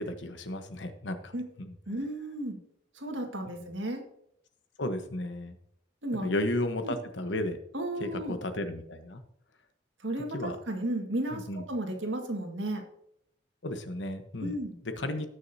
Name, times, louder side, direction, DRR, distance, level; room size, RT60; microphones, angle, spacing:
voice 1, 0.0-1.7 3.5-3.6 4.8-5.5 6.2-7.6 8.0-9.2 10.3-10.6 11.3-11.6 13.6-14.5 14.8-15.3, left 1 dB, 70° left, 8 dB, 1.1 m, -33 dB
voice 2, 1.9-2.6 2.9-4.0 6.0-6.3 6.8-6.9 7.7-8.3 10.0-12.8 14.4-14.8, right 1 dB, 75° right, 3 dB, 1.9 m, -33 dB
18.5 x 6.4 x 2.8 m, 0.74 s
head